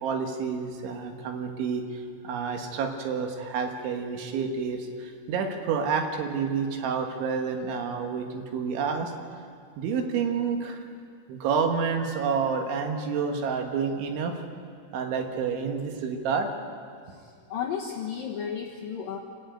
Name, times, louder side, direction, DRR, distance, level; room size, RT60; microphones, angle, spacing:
voice 1, 0.0-9.1 9.8-10.8 11.3-14.3 14.9-16.5, right 6 dB, 70° right, 3 dB, 3.7 m, -29 dB
voice 2, 17.1-19.2, left 8 dB, 75° left, -1 dB, 2.1 m, -34 dB
27.0 x 12.0 x 9.1 m, 2.2 s
omnidirectional pair, 5.9 m